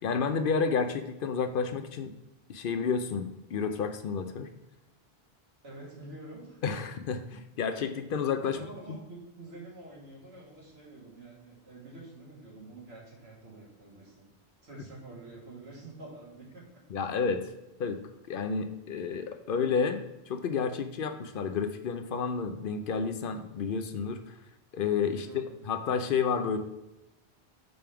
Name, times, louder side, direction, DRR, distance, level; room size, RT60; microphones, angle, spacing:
voice 1, 0.0-2.1 2.5-4.5 6.6-8.6 16.9-17.5 17.8-18.0 18.3-24.4 24.7-26.6, left 5 dB, 65° left, 8 dB, 0.7 m, -30 dB
voice 2, 5.6-6.6 8.4-14.2 14.6-16.7 17.0-17.1 25.1-25.6, right 2 dB, 90° right, -4 dB, 2.3 m, -47 dB
5.3 x 3.5 x 5.7 m, 0.95 s
omnidirectional pair, 1.1 m